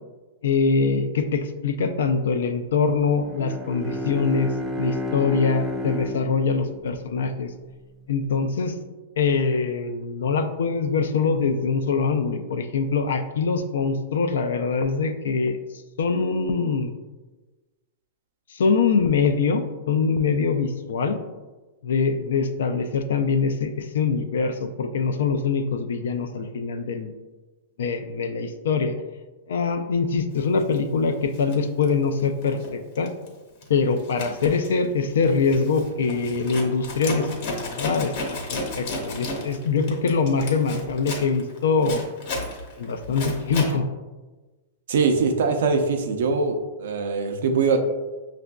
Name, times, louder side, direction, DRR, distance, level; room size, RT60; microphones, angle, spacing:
voice 1, 0.4-4.5 4.8-7.5 8.1-8.7 9.2-15.6 16.0-16.9 18.5-21.2 21.8-27.1 27.8-28.9 29.5-33.1 33.7-37.3 37.6-38.1 38.5-42.0 42.8-43.9, left 5 dB, 85° left, 7 dB, 0.4 m, -23 dB
Bowed string instrument, 3.2-7.8, left 1 dB, 10° right, 0.4 m, -31 dB
Zipper (clothing), 30.6-30.8 31.3-32.7 33.0-33.3 33.6-43.8, left 2 dB, 55° left, 1.1 m, -33 dB
voice 2, 44.9-47.8, right 4 dB, 70° right, 5 dB, 0.5 m, -22 dB
5.9 x 2.5 x 2.2 m, 1.2 s
supercardioid pair, 160°, 0 cm